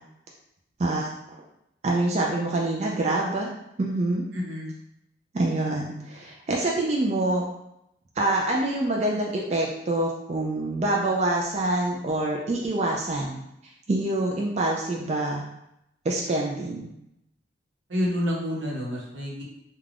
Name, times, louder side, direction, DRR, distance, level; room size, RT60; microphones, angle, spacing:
voice 1, 1.8-3.5 3.8-4.2 5.3-7.5 8.2-13.4 13.9-15.4 16.0-16.9, right 2 dB, 35° right, -1 dB, 0.3 m, -26 dB
voice 2, 4.3-4.7 17.9-19.4, equal, 90° right, -3 dB, 0.8 m, -28 dB
2.5 x 2.2 x 3.3 m, 0.81 s
head